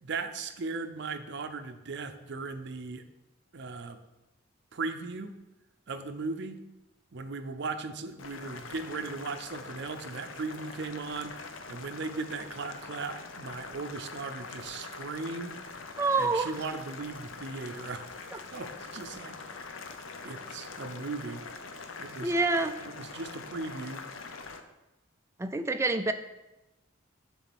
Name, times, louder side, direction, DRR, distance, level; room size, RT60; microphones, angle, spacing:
voice 1, 0.0-3.0 3.5-4.0 4.7-5.3 5.9-6.6 7.1-11.3 11.7-15.6 16.2-19.4 20.2-21.4 22.0-22.4 22.8-24.0, right 4 dB, 60° right, 8 dB, 0.6 m, -37 dB
Boiling, 8.2-24.6, left 4 dB, 75° left, 0.7 m, -44 dB
voice 2, 16.0-16.5 18.3-18.4 22.2-22.7 25.4-26.1, right 3 dB, 15° right, 8 dB, 0.3 m, -27 dB
7.1 x 3.8 x 6.0 m, 0.99 s
head